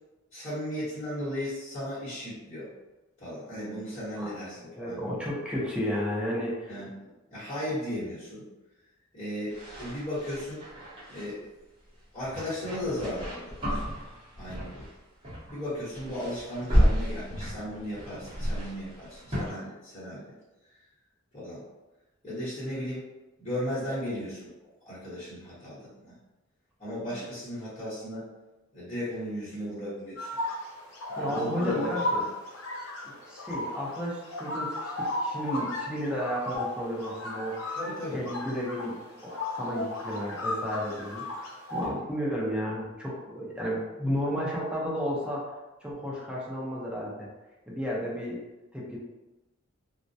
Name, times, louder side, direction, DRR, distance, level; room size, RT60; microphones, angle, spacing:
voice 1, 0.3-2.7 3.2-5.0 6.7-6.9 7.3-8.4 9.1-10.6 11.1-11.5 12.1-14.0 14.4-14.9 15.5-20.3 21.3-21.6 22.2-23.0 23.4-24.5 24.8-26.1 26.8-28.2 28.7-30.3 31.2-32.3 37.7-38.2 41.8-42.0, left 1 dB, 30° left, -12 dB, 1.1 m, -36 dB
voice 2, 4.5-6.7 31.2-32.3 33.0-37.7 38.1-45.5 45.8-47.3 47.7-48.4 48.7-49.0, equal, 5° right, -5 dB, 0.6 m, -33 dB
sound 1, 9.5-11.3 12.2-15.0 15.2-15.6 15.9-19.5, equal, 25° right, 0.9 m, -31 dB
sound 2, 30.2-41.9, left 1 dB, 85° left, 0.6 m, -35 dB
2.2 x 2.1 x 2.6 m, 1.1 s
head